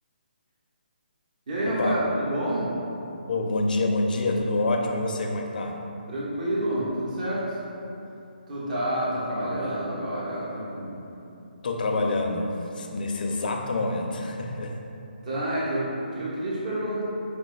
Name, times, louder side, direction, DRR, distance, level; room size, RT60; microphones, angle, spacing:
voice 1, 1.5-2.7 6.1-7.6 8.5-11.0 15.2-17.0, right 1 dB, 50° right, -8 dB, 1.2 m, -28 dB
voice 2, 3.3-5.8 11.6-14.7, left 2 dB, 60° left, 2 dB, 0.5 m, -27 dB
5.1 x 3.2 x 2.2 m, 2.8 s
hypercardioid pair, 150°, 5 cm